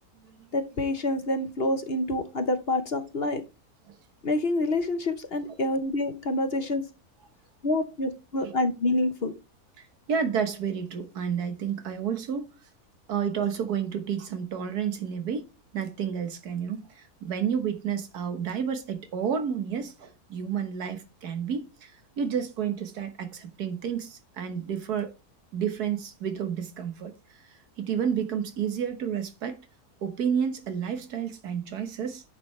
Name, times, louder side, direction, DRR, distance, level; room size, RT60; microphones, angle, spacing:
voice 1, 0.5-3.4 4.2-6.8 7.6-9.3, left 2 dB, 45° left, 1.0 m, -27 dB
voice 2, 9.8-12.5 13.1-25.1 25.5-29.6 30.0-32.2, right 7 dB, 80° right, 1.7 m, -31 dB
10.0 x 6.1 x 3.2 m
omnidirectional pair, 1.6 m